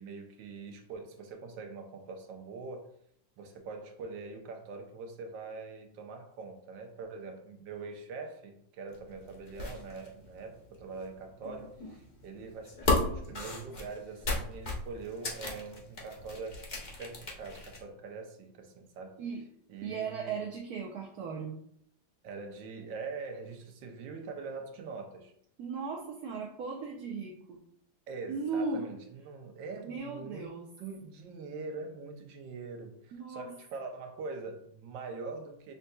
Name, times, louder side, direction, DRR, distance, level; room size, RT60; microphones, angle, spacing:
voice 1, 0.0-2.9 3.4-19.2 19.7-20.4 22.2-25.3 28.1-35.7, right 4 dB, 90° right, 3 dB, 1.4 m, -43 dB
sound 1, 8.9-17.8, left 2 dB, 50° left, 0.5 m, -36 dB
voice 2, 19.8-21.6 25.6-27.6 28.3-28.9 29.8-30.7 33.1-33.5, right 5 dB, 70° right, -1 dB, 1.0 m, -37 dB
6.4 x 2.7 x 2.2 m, 0.68 s
omnidirectional pair, 1.9 m